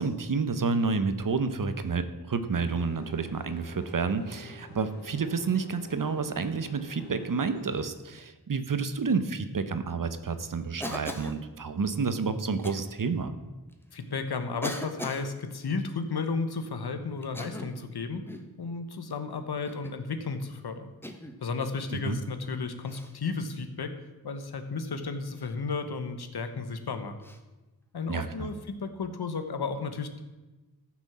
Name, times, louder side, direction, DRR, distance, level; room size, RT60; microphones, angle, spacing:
voice 1, 0.0-13.3 21.9-22.2 28.1-28.5, right 4 dB, 55° right, 11 dB, 1.0 m, -30 dB
sound 1, 2.5-7.9, left 1 dB, 25° left, 3.5 m, -50 dB
Cough, 10.8-11.4 12.6-12.8 13.7-13.8 14.6-15.3 17.2-17.8 18.3-18.5 19.6-20.0 21.0-21.4 22.9-23.1 25.3-25.5 27.2-27.4, equal, 5° left, 1.2 m, -39 dB
voice 2, 13.9-18.2 18.6-20.9 21.4-23.9 24.2-27.2 27.9-30.2, left 4 dB, 80° left, 8 dB, 1.3 m, -33 dB
14.5 x 6.2 x 7.4 m, 1.1 s
wide cardioid pair, 110°, 38 cm